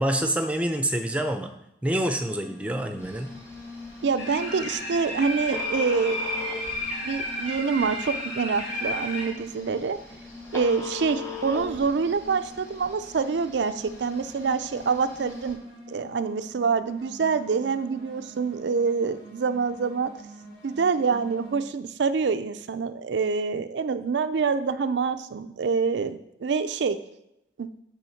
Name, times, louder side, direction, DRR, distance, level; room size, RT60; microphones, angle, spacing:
voice 1, 0.0-1.5 1.8-3.3, right 1 dB, 5° right, 6 dB, 0.5 m, -26 dB
sound 1, 2.1-21.6, left 2 dB, 60° left, 2.9 m, -45 dB
Telephone, 3.0-15.5, left 4 dB, 15° left, 1.2 m, -41 dB
voice 2, 4.0-6.2 7.0-10.0 10.5-15.6 15.9-20.1 20.6-27.0 27.6-27.7, right 5 dB, 90° right, 10 dB, 0.4 m, -26 dB
sound 2, 4.2-9.3, left 1 dB, 35° left, 2.0 m, -32 dB
9.0 x 3.5 x 5.7 m, 0.82 s
head